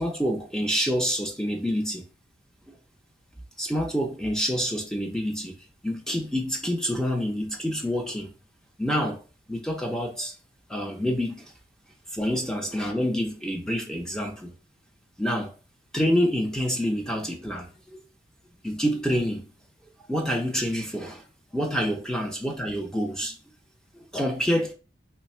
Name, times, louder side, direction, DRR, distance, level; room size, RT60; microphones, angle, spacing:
voice 1, 0.0-2.0 2.7-2.8 3.6-5.6 5.8-8.3 8.8-9.2 9.5-10.3 10.7-11.4 12.1-14.5 15.2-15.5 15.9-17.7 18.6-19.5 20.1-21.2 21.5-23.4 24.1-24.7, equal, 5° left, 0.5 m, -27 dB
3.1 x 2.3 x 4.2 m
head